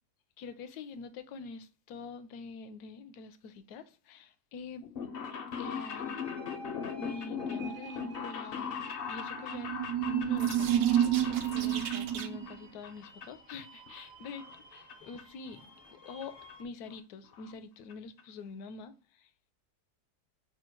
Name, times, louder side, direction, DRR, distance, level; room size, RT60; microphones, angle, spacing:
voice 1, 0.4-4.9 5.6-6.3 7.0-9.7 10.1-10.8 11.3-14.4 14.7-15.6 15.9-19.3, left 4 dB, 80° left, 1.1 m, -45 dB
sound 1, 4.8-12.6 12.8-13.5 13.9-14.9 15.2-15.3 16.2-16.3 16.5-16.6 16.9-17.0 17.2-17.5 17.9-18.0 18.2-18.3, left 6 dB, 60° left, 0.6 m, -40 dB
sound 2, 5.6-16.6, right 1 dB, 30° right, 0.5 m, -51 dB
sound 3, 9.3-12.5, right 11 dB, 75° right, 1.0 m, -29 dB
3.7 x 2.2 x 4.3 m
omnidirectional pair, 1.7 m